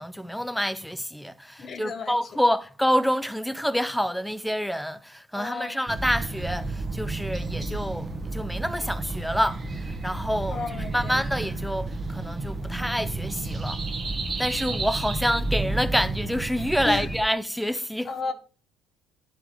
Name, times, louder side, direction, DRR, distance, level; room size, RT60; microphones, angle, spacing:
voice 1, 0.0-13.8 14.4-18.1, equal, ahead, 0.5 m, -27 dB
voice 2, 1.6-2.4 5.3-5.8 10.5-11.2 16.8-17.1 18.0-18.3, left 4 dB, 45° left, 1.4 m, -33 dB
sound 1, 5.9-17.2, right 2 dB, 30° right, 1.3 m, -31 dB
11.0 x 3.8 x 4.6 m
hypercardioid pair, 70°, 0 cm